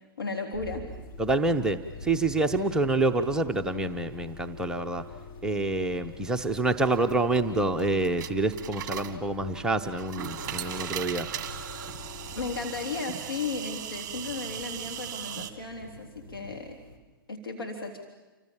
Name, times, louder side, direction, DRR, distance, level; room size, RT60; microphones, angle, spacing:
voice 1, 0.2-0.8 12.3-16.7 17.3-18.0, left 4 dB, 75° left, 1 dB, 3.5 m, -35 dB
sound 1, 0.5-14.0, left 4 dB, 30° left, 3.7 m, -45 dB
sound 2, 0.9-17.0, left 3 dB, 55° left, 5.0 m, -51 dB
voice 2, 1.2-5.1 5.4-11.3, right 2 dB, 5° right, 4 dB, 0.8 m, -27 dB
sound 3, 6.8-15.5, right 10 dB, 25° right, 1.9 m, -39 dB
29.5 x 25.0 x 7.3 m, 1.2 s
figure-of-eight pair, 125°, 12 cm